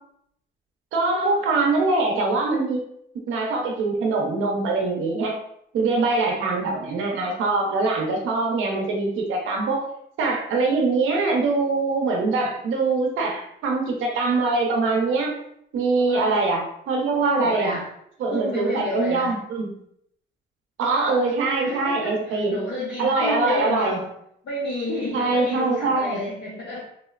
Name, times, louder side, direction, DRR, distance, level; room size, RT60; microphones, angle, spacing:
voice 1, 0.9-2.8 3.3-5.4 5.7-9.8 10.2-15.3 15.7-17.8 18.2-19.7 20.8-22.6 23.0-24.0 25.1-26.2, right 3 dB, 85° right, 0 dB, 0.8 m, -23 dB
voice 2, 16.0-16.4 17.2-17.9 18.3-19.4 21.5-24.1 24.4-26.8, left 1 dB, 60° left, -6 dB, 0.9 m, -30 dB
3.6 x 2.1 x 2.4 m, 0.72 s
cardioid pair, 90°, 20 cm